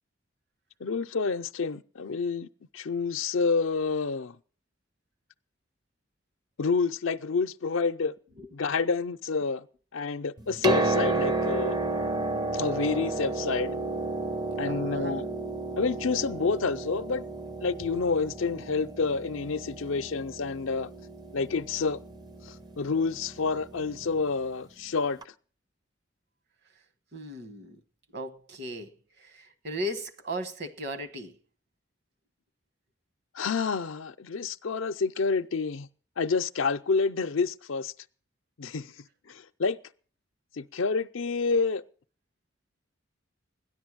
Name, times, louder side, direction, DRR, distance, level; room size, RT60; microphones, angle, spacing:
voice 1, 0.8-2.5 2.7-4.4 6.6-8.1 8.5-9.6 9.9-11.8 12.5-13.8 14.6-15.3 15.8-17.2 17.6-20.9 21.3-22.0 22.5-25.2 33.3-35.9 36.2-37.9 38.6-38.9 39.3-39.8 40.6-41.8, left 4 dB, 90° left, 0.6 m, -28 dB
Piano, 10.4-24.1 25.2-25.3, right 3 dB, 20° right, 0.5 m, -32 dB
voice 2, 14.7-15.2 27.1-27.8 28.1-31.3, equal, 60° right, 1.3 m, -37 dB
13.5 x 10.5 x 6.2 m
head